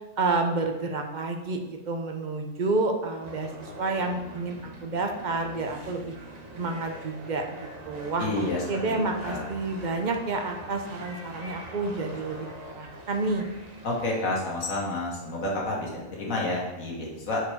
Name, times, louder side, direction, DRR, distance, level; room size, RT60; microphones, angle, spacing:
voice 1, 0.2-6.1 6.5-13.5, right 3 dB, 50° right, 4 dB, 0.5 m, -30 dB
sound 1, 3.2-14.2, right 1 dB, 35° right, 0.9 m, -44 dB
voice 2, 8.2-9.4 13.8-17.4, left 2 dB, 75° left, -3 dB, 1.8 m, -30 dB
4.8 x 4.5 x 4.9 m, 1.1 s
omnidirectional pair, 1.4 m